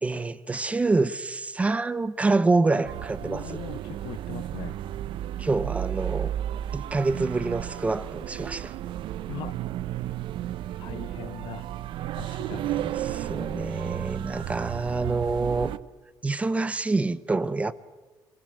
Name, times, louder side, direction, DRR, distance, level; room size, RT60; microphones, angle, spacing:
voice 1, 0.0-3.6 5.4-6.3 6.7-8.7 12.5-15.7 16.2-17.7, right 3 dB, 15° right, 0.8 m, -26 dB
sound 1, 2.8-15.8, right 12 dB, 70° right, 0.7 m, -33 dB
voice 2, 3.2-4.8 9.3-9.6 10.8-11.7 12.2-12.7, left 13 dB, 70° left, 0.8 m, -40 dB
26.5 x 20.0 x 7.7 m
cardioid pair, 160°, 9 cm